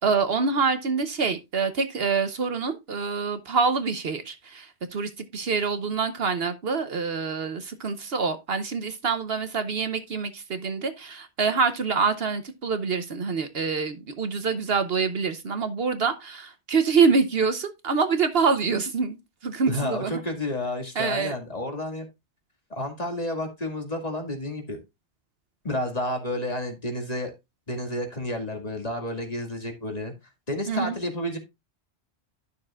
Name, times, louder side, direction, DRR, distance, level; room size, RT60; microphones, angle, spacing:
voice 1, 0.0-19.2 19.4-20.1 21.0-21.3 30.7-30.9, right 5 dB, 60° right, 1.0 m, -26 dB
voice 2, 19.7-22.1 22.7-24.8 25.6-27.3 27.7-30.1 30.5-31.4, left 1 dB, 35° left, 2.3 m, -30 dB
12.5 x 6.7 x 2.3 m
omnidirectional pair, 1.2 m